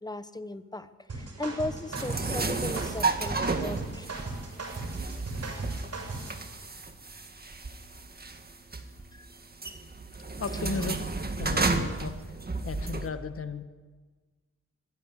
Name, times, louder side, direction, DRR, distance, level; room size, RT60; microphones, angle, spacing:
voice 1, 0.0-4.1 9.1-9.3, left 2 dB, 15° left, 12 dB, 1.1 m, -37 dB
sound 1, 1.1-6.4, right 3 dB, 55° right, 6.6 m, -38 dB
sound 2, 1.9-13.1, right 3 dB, 30° right, 1.8 m, -32 dB
voice 2, 10.4-11.1 11.4-12.2 12.6-13.6, left 5 dB, 50° left, 9 dB, 1.3 m, -34 dB
24.0 x 12.0 x 9.8 m, 1.4 s
cardioid pair, 85°, 30 cm